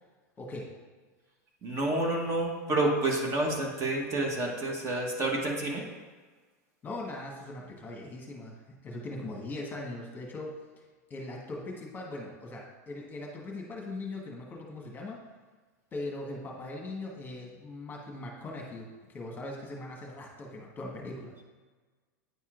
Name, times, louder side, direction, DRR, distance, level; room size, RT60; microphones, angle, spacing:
voice 1, 0.4-0.7 6.8-10.8 11.1-15.3 15.9-21.4, left 2 dB, 20° left, -1 dB, 1.2 m, -40 dB
voice 2, 1.6-5.9, right 2 dB, 30° right, 0 dB, 1.1 m, -29 dB
9.2 x 4.3 x 2.5 m, 1.4 s
hypercardioid pair, 115°, 9 cm